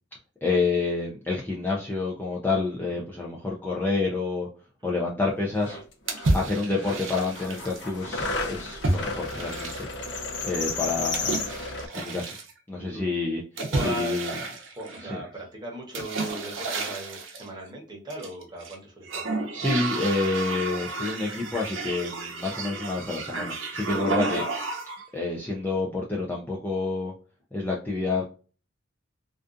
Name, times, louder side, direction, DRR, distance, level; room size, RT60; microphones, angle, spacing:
voice 1, 0.4-4.5 4.8-5.8 6.3-9.9 10.4-11.4 11.9-12.4 12.7-13.4 13.8-14.3 15.0-15.2 19.5-24.4 25.1-27.1 27.5-28.2, left 3 dB, 10° left, -3 dB, 0.3 m, -28 dB
sound 1, 5.3-5.4 5.5-6.3 6.7-11.9, left 3 dB, 60° left, 0.6 m, -33 dB
sound 2, 6.1-7.9 8.8-10.1 11.1-12.5 13.6-15.3 15.9-17.5 18.1-18.7 19.0-25.0, right 2 dB, 70° right, 0.7 m, -31 dB
voice 2, 13.6-19.5, right 1 dB, 20° right, -1 dB, 0.8 m, -38 dB
2.5 x 2.3 x 2.4 m, 0.37 s
head